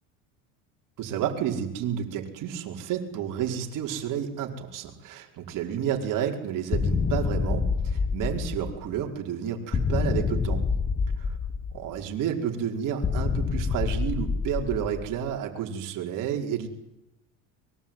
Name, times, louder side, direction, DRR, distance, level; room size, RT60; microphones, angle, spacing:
voice 1, 1.0-10.6 11.2-11.3 11.7-16.7, right 9 dB, 55° right, 2 dB, 5.2 m, -30 dB
sound 1, 6.7-9.0 9.7-12.0 13.0-15.3, left 5 dB, 20° left, 1.3 m, -27 dB
23.5 x 22.5 x 9.3 m, 0.90 s
supercardioid pair, 100°, 38 cm